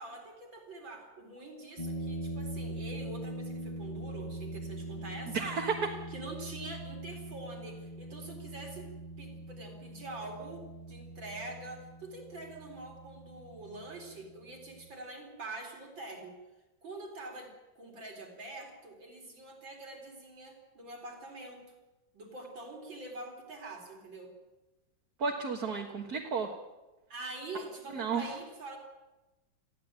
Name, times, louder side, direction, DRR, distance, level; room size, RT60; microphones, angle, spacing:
voice 1, 0.0-5.4 6.1-8.9 9.2-16.4 16.8-21.6 22.1-24.3 27.1-28.8, right 2 dB, 80° right, 2 dB, 4.9 m, -45 dB
sound 1, 1.8-14.9, right 1 dB, 20° left, 1.7 m, -42 dB
voice 2, 5.3-6.0 25.2-26.5 27.9-28.3, right 5 dB, 55° right, 1 dB, 2.1 m, -32 dB
21.0 x 15.0 x 8.9 m, 1.1 s
omnidirectional pair, 2.0 m